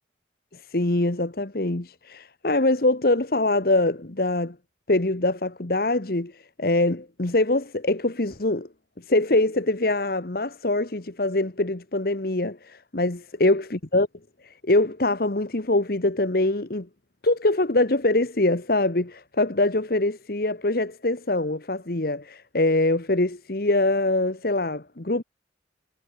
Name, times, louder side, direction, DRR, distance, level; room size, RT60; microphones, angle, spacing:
voice 1, 0.5-4.6 4.9-8.7 9.0-14.1 14.4-16.9 17.2-25.2, left 2 dB, 55° left, 1.4 m, -24 dB
head